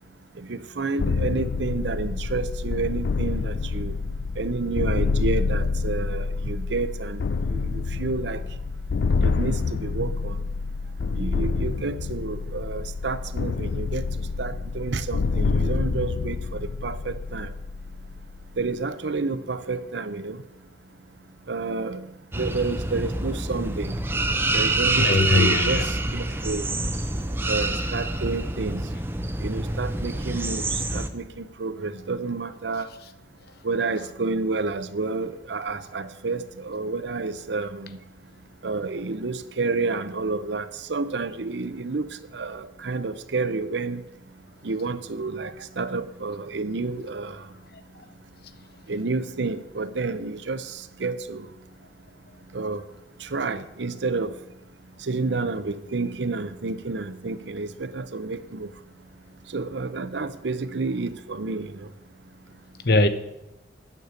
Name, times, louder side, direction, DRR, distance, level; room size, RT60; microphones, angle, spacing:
voice 1, 0.4-3.9 4.4-7.2 7.5-8.4 9.2-10.4 11.2-14.0 14.4-17.5 18.6-20.4 21.5-22.1 22.3-24.0 24.5-26.7 27.5-28.8 29.4-32.9 33.6-38.0 38.6-42.1 42.3-44.0 44.6-47.4 48.9-51.5 52.5-52.8 53.2-54.3 55.1-58.7 59.5-61.9, right 3 dB, 75° right, 0.7 m, -30 dB
sound 1, 1.0-18.7, left 4 dB, 70° left, 0.4 m, -27 dB
sound 2, 22.3-31.1, right 2 dB, 10° right, 0.6 m, -26 dB
voice 2, 25.0-25.9 47.7-47.8 62.8-63.1, left 2 dB, 55° left, 0.8 m, -20 dB
9.1 x 6.8 x 8.2 m
head